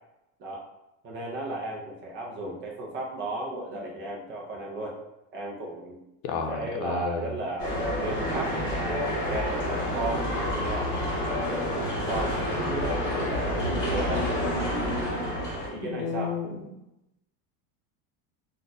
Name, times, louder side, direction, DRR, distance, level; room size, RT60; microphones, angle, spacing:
voice 1, 1.0-5.0 5.3-6.0 6.5-10.9 11.5-14.3 15.5-16.4, right 1 dB, 30° right, -1 dB, 0.4 m, -35 dB
voice 2, 6.2-7.3 15.7-16.7, left 5 dB, 80° left, 5 dB, 0.7 m, -32 dB
sound 1, 7.6-15.7, equal, 25° left, 1.4 m, -28 dB
3.9 x 2.4 x 2.6 m, 0.91 s
supercardioid pair, 155°, 44 cm